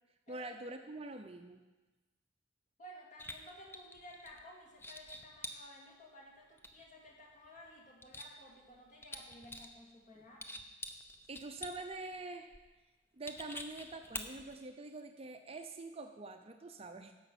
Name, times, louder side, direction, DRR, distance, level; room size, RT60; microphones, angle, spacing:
voice 1, 0.3-1.6 11.3-12.5 13.1-17.1, right 2 dB, 30° right, 6 dB, 0.6 m, -45 dB
voice 2, 2.8-10.7, left 1 dB, 40° left, -1 dB, 2.3 m, -55 dB
sound 1, 3.2-4.4 4.8-5.6 6.6-7.1 7.4-8.8 9.0-9.8 10.2-12.0 12.5-12.6 13.3-14.6, left 1 dB, 10° left, 0.6 m, -46 dB
11.0 x 7.0 x 6.0 m, 1.2 s
head